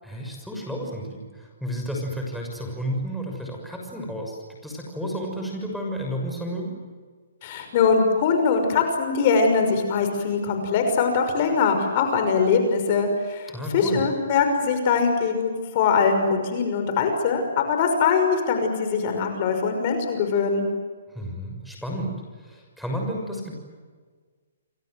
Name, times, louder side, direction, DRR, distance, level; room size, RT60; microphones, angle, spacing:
voice 1, 0.0-6.7 13.5-14.0 21.1-22.1 22.4-23.5, equal, ahead, -1 dB, 6.5 m, -31 dB
voice 2, 7.4-13.5 13.7-20.7, left 5 dB, 40° left, 5 dB, 5.8 m, -22 dB
29.5 x 24.0 x 7.9 m, 1.5 s
hypercardioid pair, 150°, 0 cm